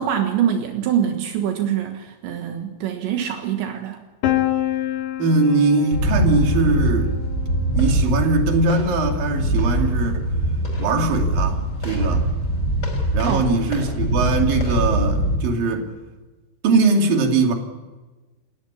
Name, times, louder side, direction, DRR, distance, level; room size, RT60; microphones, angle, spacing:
voice 1, 0.0-4.0 13.3-13.4, right 9 dB, 80° right, 4 dB, 3.7 m, -24 dB
Piano, 4.2-10.0, left 13 dB, 70° left, 3.9 m, -29 dB
voice 2, 5.2-7.1 7.7-10.3 10.8-12.3 13.1-15.9 16.6-17.5, right 3 dB, 55° right, 3 dB, 4.1 m, -21 dB
sound 1, 5.9-15.4, right 1 dB, 20° left, 5.9 m, -22 dB
29.5 x 14.0 x 9.9 m, 1.2 s
omnidirectional pair, 5.2 m